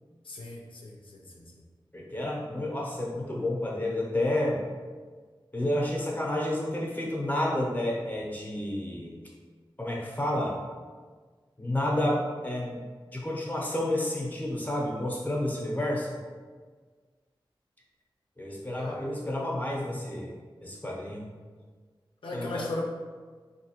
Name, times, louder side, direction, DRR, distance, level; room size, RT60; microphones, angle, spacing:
voice 1, 0.3-1.4 18.7-19.0 22.2-22.8, left 2 dB, 75° left, -2 dB, 0.5 m, -37 dB
voice 2, 1.9-4.6 5.5-9.1 9.8-10.6 11.6-12.8 13.1-16.1 18.4-20.3 20.6-21.2 22.3-22.6, left 1 dB, 20° left, -3 dB, 0.7 m, -30 dB
3.4 x 2.7 x 2.9 m, 1.5 s
wide cardioid pair, 70°, 9 cm